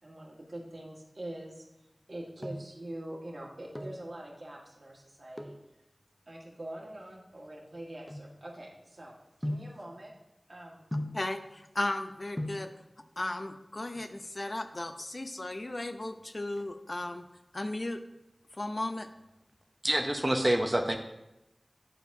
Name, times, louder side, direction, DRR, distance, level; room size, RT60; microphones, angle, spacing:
voice 1, 0.0-1.6 2.1-5.5 6.3-9.1 9.4-10.1 10.5-10.9, right 1 dB, 60° right, -3 dB, 1.6 m, -44 dB
sound 1, 2.0-2.8 3.5-4.1 5.3-5.7 6.4-8.8 9.4-9.8 10.9-11.3 12.1-12.2 12.4-12.7 13.8-14.4 14.7-14.8 15.0-15.1 15.5-15.9 16.2-17.3 17.7-18.1 18.5-19.6 19.9-20.0, left 1 dB, 10° left, 0.7 m, -39 dB
voice 2, 11.1-12.7 13.2-17.2 17.5-18.0 18.5-19.1, left 1 dB, 50° left, 8 dB, 0.5 m, -35 dB
voice 3, 19.8-21.0, right 1 dB, 20° right, 3 dB, 0.6 m, -27 dB
9.9 x 4.6 x 2.7 m, 0.91 s
wide cardioid pair, 50°, 0 cm